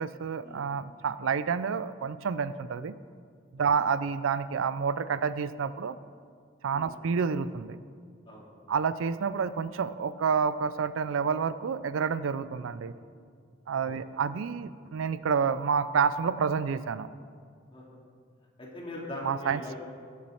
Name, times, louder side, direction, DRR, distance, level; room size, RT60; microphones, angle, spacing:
voice 1, 0.0-2.9 3.5-6.0 6.6-7.8 8.7-12.9 13.7-17.1 19.2-19.8, right 6 dB, 90° right, 15 dB, 0.4 m, -29 dB
voice 2, 12.6-13.1 13.7-14.0 17.7-18.0 18.6-19.8, left 1 dB, 25° left, -3 dB, 2.4 m, -42 dB
19.5 x 7.2 x 4.4 m, 2.1 s
head